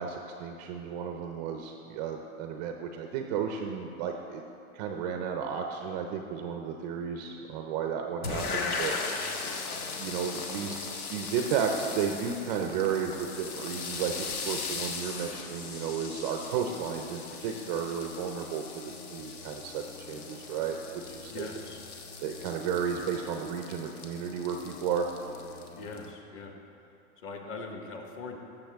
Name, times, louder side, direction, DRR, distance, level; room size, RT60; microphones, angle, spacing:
voice 1, 0.0-4.4 4.7-8.9 10.0-10.8 11.1-21.5 22.2-25.1, right 7 dB, 30° right, 4 dB, 0.5 m, -33 dB
sound 1, 8.2-26.1, left 4 dB, 90° left, 1.3 m, -38 dB
voice 2, 21.3-21.8 25.7-26.6 27.2-28.4, left 3 dB, 30° left, 2 dB, 1.1 m, -41 dB
14.0 x 7.4 x 3.5 m, 2.6 s
hypercardioid pair, 140°, 43 cm